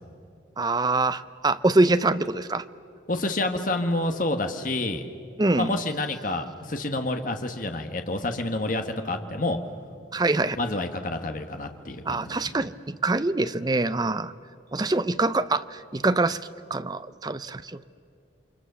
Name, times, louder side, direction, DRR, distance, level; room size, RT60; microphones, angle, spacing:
voice 1, 0.6-2.6 5.4-5.7 10.1-10.6 12.1-14.3 14.7-16.4 16.7-17.8, right 2 dB, 20° right, 13 dB, 0.5 m, -24 dB
voice 2, 3.1-5.0 5.6-9.6 10.6-12.7, left 2 dB, 45° left, 5 dB, 1.4 m, -28 dB
29.0 x 24.5 x 6.9 m, 2.4 s
head